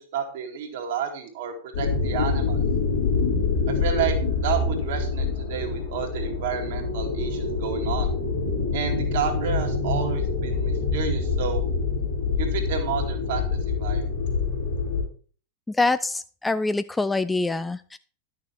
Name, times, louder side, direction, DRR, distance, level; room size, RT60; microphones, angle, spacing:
voice 1, 0.1-2.6 3.7-4.1 4.4-8.1 8.7-11.6 12.4-13.5 13.8-14.0, right 7 dB, 55° right, 4 dB, 2.2 m, -30 dB
sound 1, 1.7-15.0, left 4 dB, 65° left, 3.5 m, -26 dB
voice 2, 15.7-18.0, left 3 dB, 10° left, 13 dB, 0.3 m, -25 dB
11.0 x 6.5 x 4.5 m, 0.41 s
figure-of-eight pair, 90°, 0 cm